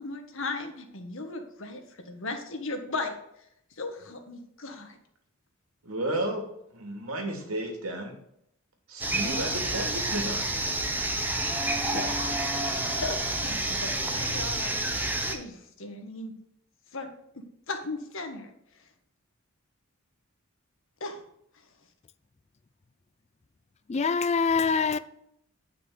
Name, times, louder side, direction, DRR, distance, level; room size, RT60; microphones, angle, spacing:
voice 1, 0.0-3.1 3.8-5.0 11.8-12.3 12.8-16.3 16.9-17.1 17.3-18.5 21.0-21.2, left 3 dB, 65° left, 1.6 m, -37 dB
voice 2, 5.8-6.5 6.7-8.1 8.9-10.8, right 1 dB, 90° right, 2.6 m, -33 dB
sound 1, 9.0-15.3, right 1 dB, 10° right, 1.1 m, -29 dB
voice 3, 23.9-25.0, left 5 dB, 30° left, 0.4 m, -24 dB
9.6 x 5.9 x 4.9 m
head